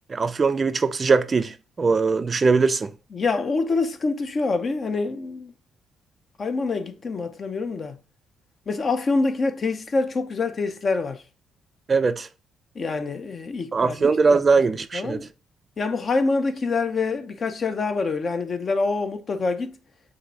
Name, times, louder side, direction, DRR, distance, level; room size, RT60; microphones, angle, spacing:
voice 1, 0.1-2.9 11.9-12.3 13.7-15.2, right 4 dB, 35° right, 0.3 m, -21 dB
voice 2, 3.1-5.5 6.4-8.0 8.7-11.2 12.8-14.4 14.9-15.3 15.8-19.8, left 3 dB, 45° left, 0.6 m, -26 dB
6.2 x 2.6 x 2.7 m
cardioid pair, 90°, 0 cm